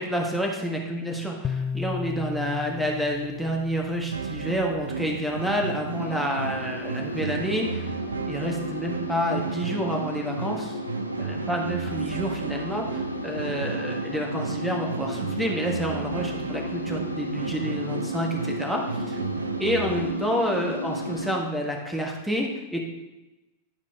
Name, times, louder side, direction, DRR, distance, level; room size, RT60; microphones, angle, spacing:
voice 1, 0.0-7.9 8.3-10.8 11.2-19.2 19.6-22.8, equal, 5° right, 0 dB, 1.3 m, -29 dB
sound 1, 1.4-4.7, left 6 dB, 25° left, 0.3 m, -34 dB
sound 2, 4.1-20.1, right 5 dB, 70° right, 0.5 m, -34 dB
sound 3, 6.0-21.4, equal, 90° left, 0.6 m, -34 dB
11.0 x 4.9 x 3.5 m, 1.0 s
figure-of-eight pair, 90°, 0 cm